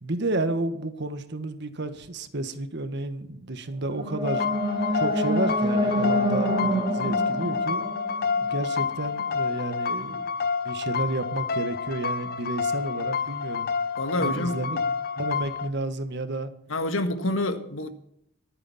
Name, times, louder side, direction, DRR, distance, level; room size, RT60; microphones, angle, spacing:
voice 1, 0.0-4.4 4.9-7.9 8.4-10.3 10.6-13.7 14.2-14.8 15.2-16.5, right 2 dB, 60° right, 1.5 m, -31 dB
sound 1, 3.7-8.8, equal, 25° right, 3.1 m, -27 dB
sound 2, 4.2-15.7, left 5 dB, 50° left, 0.7 m, -29 dB
voice 2, 14.0-14.8 16.7-17.9, left 1 dB, 90° left, 1.7 m, -28 dB
24.0 x 9.3 x 4.3 m
head